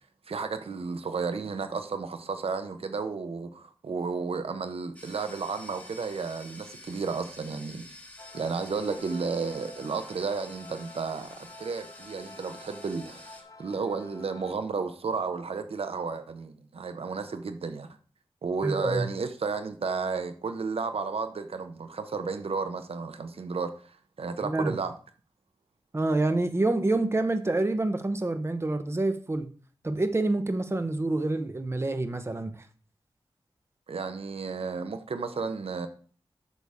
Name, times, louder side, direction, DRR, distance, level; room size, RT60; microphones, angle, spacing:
voice 1, 0.3-7.8 8.3-17.9 18.4-23.7 24.2-24.9 33.9-35.9, right 4 dB, 75° right, 0.7 m, -32 dB
sound 1, 4.9-13.4, left 1 dB, 15° left, 1.8 m, -49 dB
sound 2, 8.2-14.5, left 3 dB, 35° left, 0.9 m, -49 dB
voice 2, 18.6-19.1 24.4-24.8 25.9-29.5 29.8-32.7, right 2 dB, 25° right, 0.8 m, -27 dB
8.3 x 6.2 x 3.5 m
wide cardioid pair, 80°, 10 cm